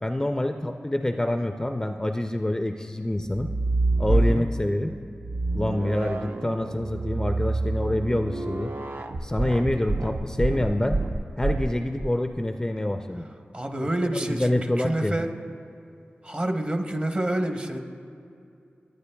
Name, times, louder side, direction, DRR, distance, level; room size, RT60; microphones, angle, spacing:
voice 1, 0.0-3.5 4.0-4.9 5.5-8.7 9.2-11.0 11.4-13.2 14.0-15.2, left 1 dB, 15° left, 6 dB, 0.4 m, -26 dB
sound 1, 3.3-4.7 5.2-12.1, right 2 dB, 55° right, 0.5 m, -27 dB
voice 2, 4.1-4.4 13.5-15.3 16.2-17.8, right 1 dB, 30° right, 5 dB, 0.8 m, -28 dB
16.5 x 9.1 x 2.2 m, 2.5 s
cardioid pair, 45°, 4 cm